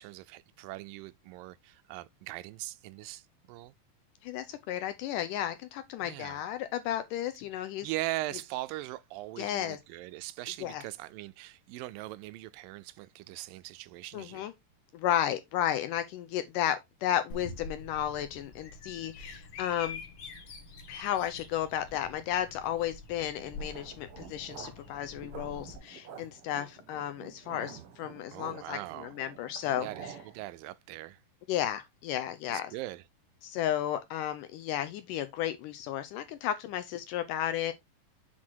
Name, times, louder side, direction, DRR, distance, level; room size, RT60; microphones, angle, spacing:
voice 1, 0.0-3.2 3.5-3.7 6.0-6.4 7.8-14.5 28.3-29.1 29.6-31.2 32.5-33.0, right 17 dB, 80° right, 2.2 m, -40 dB
voice 2, 4.2-7.9 9.4-9.8 10.6-10.8 14.1-14.5 14.9-20.0 20.9-30.1 31.5-32.7 33.4-37.7, left 11 dB, 80° left, 2.0 m, -33 dB
Bird vocalization bird call bird song, 17.3-25.7, left 3 dB, 50° left, 2.0 m, -46 dB
sound 1, 23.4-30.4, right 7 dB, 60° right, 1.6 m, -49 dB
7.5 x 4.2 x 4.5 m
omnidirectional pair, 4.2 m